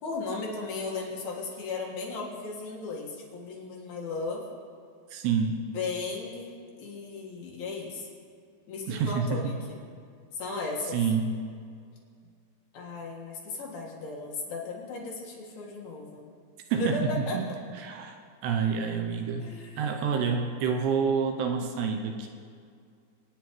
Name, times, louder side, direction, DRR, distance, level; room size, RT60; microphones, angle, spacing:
voice 1, 0.0-4.4 5.5-6.5 6.8-8.1 8.7-9.8 10.4-11.0 12.7-16.3 16.8-17.4 19.4-20.0, left 3 dB, 65° left, -3 dB, 3.3 m, -36 dB
voice 2, 5.1-5.6 8.9-9.5 10.9-11.4 16.7-17.5 17.8-18.2 18.4-19.5 19.8-22.3, right 6 dB, 85° right, 4 dB, 2.6 m, -28 dB
24.0 x 9.5 x 3.1 m, 2.2 s
omnidirectional pair, 5.0 m